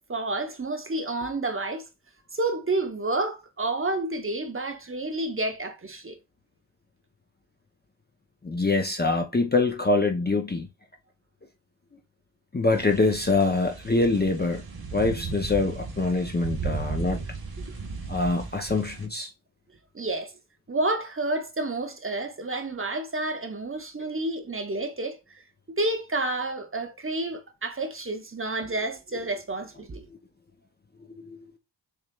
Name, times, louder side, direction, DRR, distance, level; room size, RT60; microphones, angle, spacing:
voice 1, 0.1-1.8 2.3-6.2 19.9-20.3 20.7-25.2 25.7-30.0, right 2 dB, 30° right, 0.8 m, -30 dB
voice 2, 8.4-10.7 12.5-14.6 14.9-17.2 18.1-19.3 31.3-31.4, left 3 dB, 20° left, 0.5 m, -24 dB
sound 1, 12.7-19.1, right 4 dB, 55° right, 1.3 m, -36 dB
6.5 x 3.1 x 2.3 m
wide cardioid pair, 115°, 46 cm